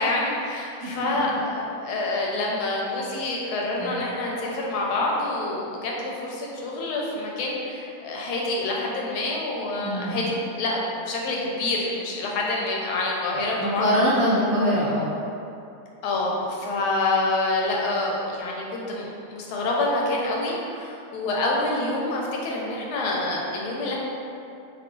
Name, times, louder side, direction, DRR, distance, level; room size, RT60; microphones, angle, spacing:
voice 1, 0.0-13.9 16.0-24.0, left 2 dB, 90° left, -2 dB, 1.5 m, -27 dB
voice 2, 9.8-10.3 13.6-15.1, equal, 80° right, -11 dB, 0.6 m, -23 dB
3.4 x 2.4 x 3.6 m, 2.6 s
omnidirectional pair, 2.2 m